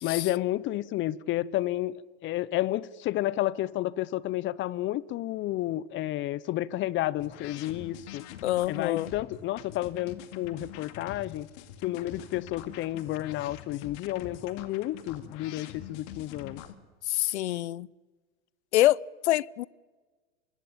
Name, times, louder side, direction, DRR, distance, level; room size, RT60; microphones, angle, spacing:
voice 1, 0.0-8.2 8.7-11.5 11.8-16.6, left 15 dB, 35° left, 0.7 m, -31 dB
sound 1, 7.2-16.7, left 10 dB, 50° left, 2.3 m, -44 dB
voice 2, 8.4-9.1 17.0-17.9 18.7-19.6, left 15 dB, 70° left, 0.7 m, -26 dB
24.5 x 21.5 x 8.7 m
hypercardioid pair, 105°, 35 cm